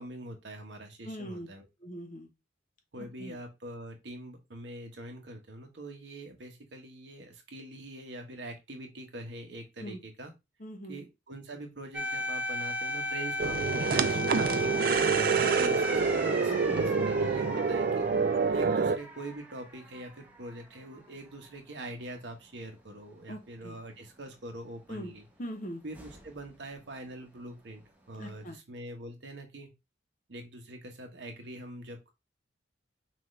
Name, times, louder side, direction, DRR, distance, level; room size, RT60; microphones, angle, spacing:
voice 1, 0.0-1.7 2.9-10.3 10.9-16.0 16.4-25.2 25.8-29.7 30.3-32.1, right 1 dB, 65° right, 4 dB, 1.1 m, -44 dB
voice 2, 1.0-1.5 1.8-2.3 3.0-3.4 9.8-10.0 10.6-11.0 15.4-15.8 16.5-16.8 23.3-23.8 24.9-25.1 25.4-25.8 28.2-28.6, equal, 40° left, 5 dB, 0.9 m, -41 dB
sound 1, 11.9-20.6 20.9-21.1 25.9-26.5, left 1 dB, 10° right, 0.8 m, -36 dB
sound 2, 13.4-19.0, right 5 dB, 50° right, 0.4 m, -27 dB
5.9 x 2.5 x 3.1 m, 0.23 s
head